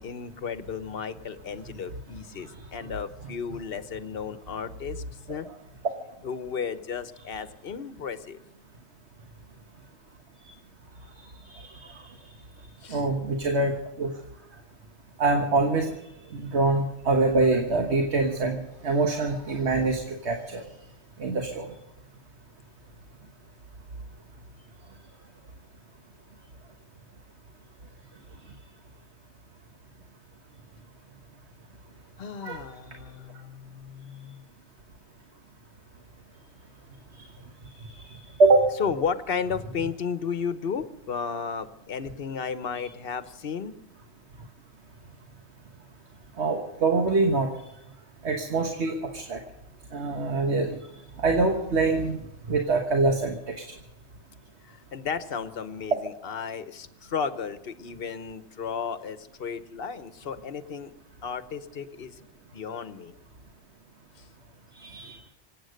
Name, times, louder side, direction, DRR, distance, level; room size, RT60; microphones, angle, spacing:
voice 1, 0.0-5.5 6.2-8.4 12.8-13.1 32.2-34.4 38.8-43.7 54.6-60.9 61.2-62.2 62.5-63.1 64.2-64.3, left 6 dB, 60° left, 12 dB, 1.1 m, -34 dB
voice 2, 11.6-12.0 12.9-13.7 14.0-14.1 15.2-15.9 16.3-20.6 21.2-21.7 32.4-32.6 38.4-38.7 46.4-47.5 48.2-49.4 49.9-50.8 51.2-52.2 52.5-53.6 64.8-65.2, right 3 dB, 80° right, 4 dB, 1.6 m, -24 dB
25.5 x 8.8 x 6.4 m, 0.88 s
omnidirectional pair, 1.1 m